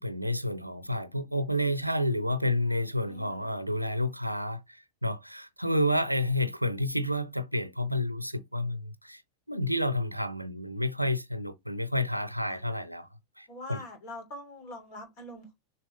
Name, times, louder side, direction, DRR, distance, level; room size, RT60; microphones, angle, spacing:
voice 1, 0.0-9.2 9.5-13.1 13.4-13.8, left 1 dB, 90° right, 0.7 m, -30 dB
voice 2, 3.1-3.5 12.5-12.8 13.5-15.5, left 1 dB, 45° left, 3.2 m, -44 dB
6.8 x 4.4 x 3.2 m
figure-of-eight pair, 90°, 0 cm